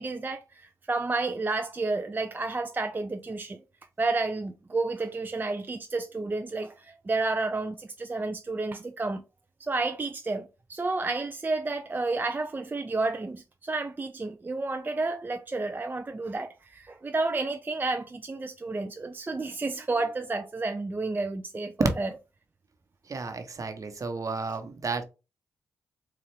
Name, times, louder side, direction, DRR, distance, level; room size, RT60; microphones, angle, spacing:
voice 1, 0.0-3.6 4.0-9.2 9.6-22.1, right 3 dB, 25° right, 0.4 m, -31 dB
voice 2, 23.1-25.0, right 4 dB, 50° right, 0.9 m, -33 dB
4.2 x 2.4 x 3.3 m
supercardioid pair, 50°, 7 cm